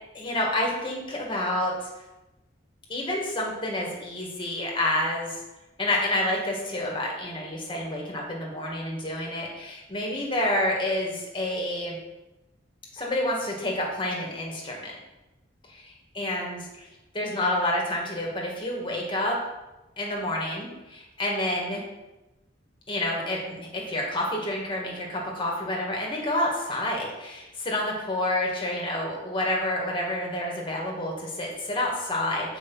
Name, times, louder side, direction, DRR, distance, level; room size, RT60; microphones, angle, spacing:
voice 1, 0.1-1.9 2.9-5.4 5.8-12.0 12.9-15.0 15.7-15.9 16.1-16.9 17.1-19.4 20.0-21.8 22.9-32.6, left 1 dB, 25° left, -2 dB, 1.8 m, -29 dB
6.9 x 4.8 x 5.5 m, 1.0 s
head